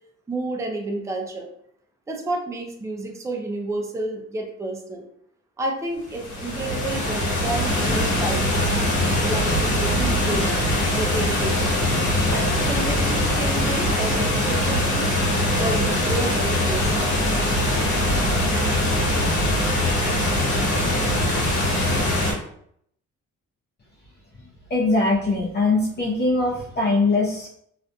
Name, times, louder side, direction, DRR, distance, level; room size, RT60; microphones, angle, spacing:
voice 1, 0.3-1.5 2.1-5.1 5.6-8.7 9.3-10.6 11.0-11.7 12.3-15.1 15.5-17.1, right 2 dB, 10° right, 1 dB, 0.4 m, -30 dB
sound 1, 6.1-22.3, left 1 dB, 75° left, 1.1 m, -22 dB
voice 2, 24.7-27.5, left 3 dB, 35° left, -6 dB, 0.7 m, -21 dB
2.6 x 2.4 x 2.2 m, 0.69 s
cardioid pair, 90°, 30 cm